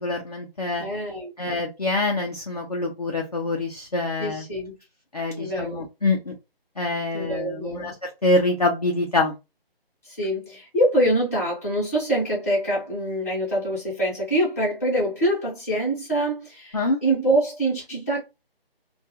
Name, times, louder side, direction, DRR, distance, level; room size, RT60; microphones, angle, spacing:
voice 1, 0.0-0.8 1.4-4.4 5.1-6.3 6.8-9.4 16.7-17.0, left 2 dB, 40° left, 0.4 m, -25 dB
voice 2, 0.8-1.3 4.2-4.7 5.4-5.9 7.1-7.9 10.0-18.2, right 1 dB, 15° left, 0.8 m, -25 dB
2.3 x 2.2 x 2.7 m
figure-of-eight pair, 170°, 31 cm